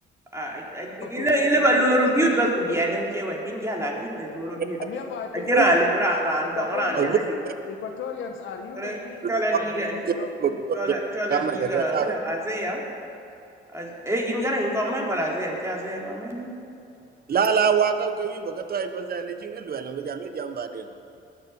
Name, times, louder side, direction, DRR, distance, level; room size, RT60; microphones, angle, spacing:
voice 1, 0.3-4.8 5.3-7.2 8.7-9.0 9.3-9.9 10.8-11.4 11.7-12.8 13.7-16.5, right 1 dB, 15° right, -2 dB, 3.8 m, -25 dB
voice 2, 1.0-2.3 4.8-5.7 6.4-7.2 7.7-10.6, left 6 dB, 80° left, 3 dB, 1.3 m, -36 dB
voice 3, 9.2-9.6 10.1-10.9 11.3-12.2 17.3-20.9, right 6 dB, 50° right, 8 dB, 1.3 m, -25 dB
20.0 x 7.2 x 9.6 m, 2.6 s
cardioid pair, 90°, 20 cm